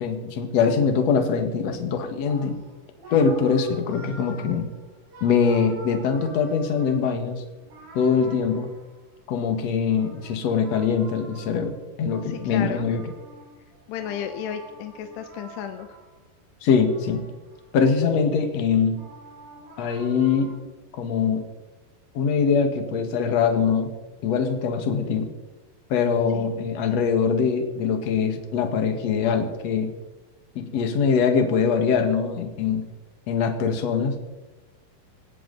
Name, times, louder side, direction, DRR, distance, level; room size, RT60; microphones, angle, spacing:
voice 1, 0.0-2.6 3.1-4.7 5.2-7.4 7.9-8.7 9.3-13.1 16.6-17.2 17.7-19.0 19.8-20.5 20.9-21.5 22.1-23.9 24.2-25.3 25.9-29.9 30.6-32.9 33.3-34.1, left 6 dB, 55° left, 6 dB, 2.1 m, -23 dB
sound 1, 2.2-9.2 9.8-16.2 16.6-17.8 18.2-20.6, right 2 dB, 70° right, 6.7 m, -46 dB
voice 2, 12.2-12.9 13.9-16.0 26.3-26.5, left 9 dB, 90° left, 7 dB, 3.0 m, -33 dB
18.5 x 17.0 x 4.0 m, 1.1 s
omnidirectional pair, 4.8 m